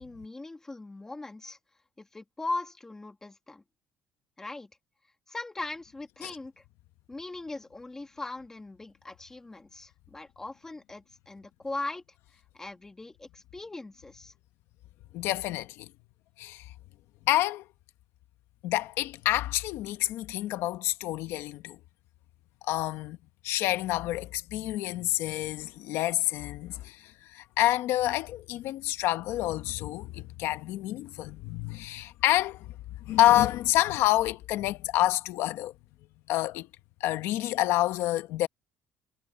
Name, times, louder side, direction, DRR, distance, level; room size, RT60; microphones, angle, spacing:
voice 1, 0.0-1.6 2.0-3.6 4.4-4.7 5.3-6.6 7.1-12.0 12.3-14.3, left 2 dB, 10° left, 2.0 m, -39 dB
voice 2, 15.1-15.9 16.4-16.6 17.3-17.6 18.6-21.8 22.6-23.2 23.4-32.7 33.0-35.7 36.3-36.7 37.0-38.5, left 15 dB, 75° left, 1.1 m, -28 dB
cardioid pair, 155°, 4 cm